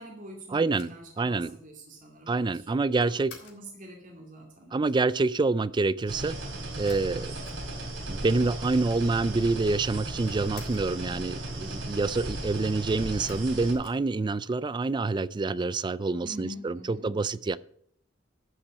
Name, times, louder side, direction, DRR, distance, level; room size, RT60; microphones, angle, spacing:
voice 1, 0.0-2.8 3.4-4.8 16.2-17.1, equal, 45° right, 0 dB, 2.5 m, -45 dB
voice 2, 0.5-1.5 2.3-3.4 4.7-6.4 6.8-7.3 8.1-17.6, right 3 dB, 25° right, 19 dB, 0.3 m, -27 dB
sound 1, 0.7-3.7 6.9-8.0 8.3-8.4 8.6-9.4 9.7-11.0 13.2-14.7, left 6 dB, 65° left, 3.5 m, -52 dB
sound 2, 6.1-13.7, right 1 dB, 85° right, 3.1 m, -36 dB
13.0 x 5.9 x 7.7 m, 0.68 s
head